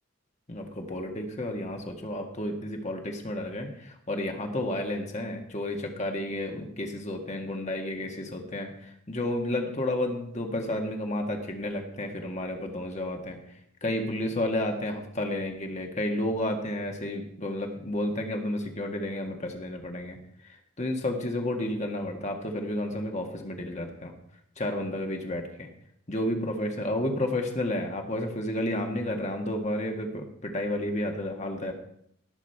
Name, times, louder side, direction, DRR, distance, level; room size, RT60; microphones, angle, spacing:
voice 1, 0.5-13.4 13.8-20.2 20.4-24.1 24.6-25.7 26.1-31.7, left 1 dB, 35° left, 3 dB, 1.7 m, -31 dB
18.5 x 7.4 x 4.6 m, 0.69 s
head